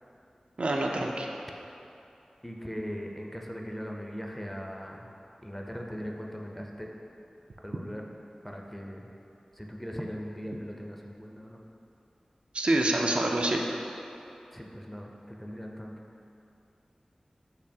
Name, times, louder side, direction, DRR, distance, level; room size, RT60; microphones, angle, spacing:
voice 1, 0.6-1.3 12.5-13.6, right 1 dB, 60° right, 0 dB, 0.4 m, -26 dB
voice 2, 2.4-5.1 5.4-6.9 7.6-8.0 8.4-9.1 9.5-11.6 14.5-15.9, equal, 10° left, 0 dB, 0.5 m, -39 dB
6.6 x 2.8 x 2.7 m, 2.8 s
wide cardioid pair, 45°, 2 cm